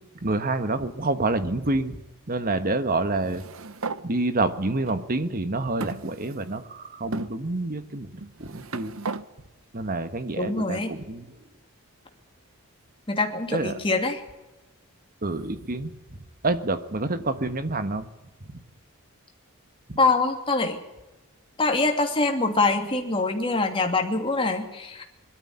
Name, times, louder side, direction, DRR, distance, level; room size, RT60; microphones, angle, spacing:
voice 1, 0.2-2.0 2.3-3.4 4.0-8.1 8.4-8.9 9.7-11.2 13.5-13.8 15.2-15.9 16.4-18.1 19.9-20.0, right 2 dB, 40° right, 10 dB, 1.4 m, -27 dB
sound 1, 3.2-4.0 4.9-5.0 5.8-6.6 7.1-7.3 8.2-9.2, right 4 dB, 65° right, 0.9 m, -35 dB
voice 2, 10.4-10.9 13.1-14.2 20.0-20.8 21.6-25.0, left 3 dB, 25° left, 3 dB, 2.8 m, -24 dB
21.5 x 13.0 x 9.8 m, 1.0 s
head